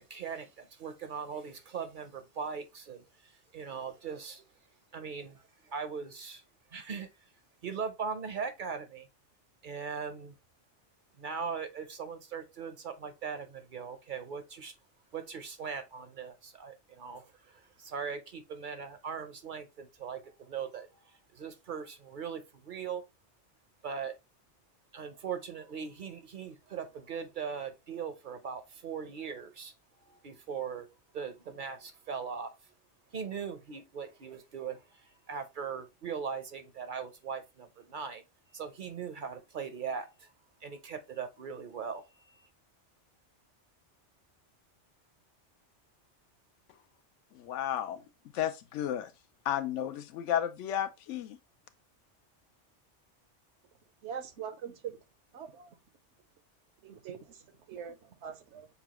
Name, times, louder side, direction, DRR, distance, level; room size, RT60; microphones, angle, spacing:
voice 1, 0.0-4.4 4.9-6.4 6.7-7.1 7.6-9.1 9.6-10.3 11.2-14.7 15.1-20.9 21.3-23.0 23.8-24.1 24.9-29.7 30.1-30.9 31.1-32.5 33.1-34.8 35.3-38.2 38.5-40.3 40.6-42.0, right 6 dB, 55° right, 0.7 m, -39 dB
voice 2, 47.3-48.0 48.3-49.1 49.4-51.4, left 10 dB, 85° left, 0.9 m, -33 dB
voice 3, 54.0-55.0 55.3-55.8 56.8-58.7, right 7 dB, 75° right, 1.0 m, -43 dB
6.8 x 2.3 x 2.9 m
omnidirectional pair, 1.2 m